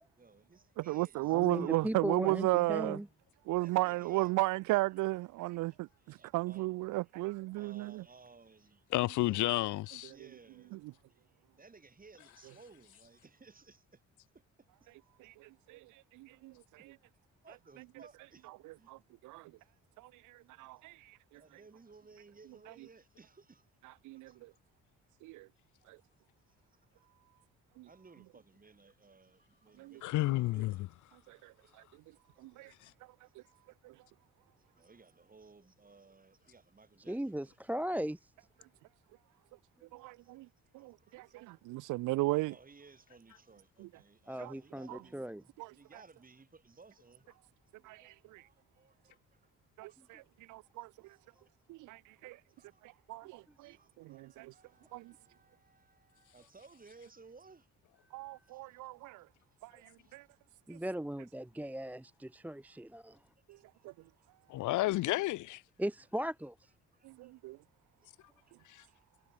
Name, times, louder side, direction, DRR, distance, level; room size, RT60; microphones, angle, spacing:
voice 1, 0.2-1.8 2.5-2.7 3.6-4.3 5.5-5.6 6.0-6.7 7.5-8.8 9.2-9.6 10.1-10.8 11.1-14.0 14.3-14.9 16.8-16.9 17.4-18.5 18.8-18.9 21.3-23.7 24.1-24.6 25.8-25.9 26.5-26.9 27.8-30.9 31.6-31.7 32.1-32.9 33.2-33.6 34.6-37.6 40.0-41.6 42.5-45.3 45.8-47.3 48.4-49.5 49.9-50.0 50.4-51.5 52.6-53.1 53.6-57.7 58.4-58.9 59.8-60.2 62.7-63.2 63.5-63.9 66.9-67.3 68.0-68.1 68.5-68.6 68.9-69.0, right 4 dB, 30° right, 6.6 m, -60 dB
voice 2, 0.8-3.0 3.5-8.0 10.0-10.2 10.7-10.8 15.2-16.9 18.6-19.5 20.0-21.4 24.0-24.5 25.2-25.5 25.9-26.0 27.8-27.9 29.8-30.0 31.3-31.8 32.4-32.7 33.0-33.1 33.8-33.9 39.9-40.5 40.7-42.5 43.8-43.9 44.4-44.5 44.9-45.0 45.6-45.7 47.8-48.5 49.8-50.2 50.5-51.2 51.7-52.4 52.8-54.5 54.9-55.1 58.1-59.3 59.6-60.3 60.7-60.8 63.5-63.6 63.8-63.9 67.0-67.6, right 20 dB, 85° right, 0.5 m, -36 dB
voice 3, 1.3-3.1 37.1-38.3 44.3-45.4 50.0-50.1 58.2-58.4 60.7-63.2 65.8-66.7, right 1 dB, 5° right, 0.8 m, -38 dB
voice 4, 8.9-10.1 30.0-30.9 64.5-65.6 68.7-68.8, left 17 dB, 80° left, 0.6 m, -31 dB
cardioid pair, 90°, 30 cm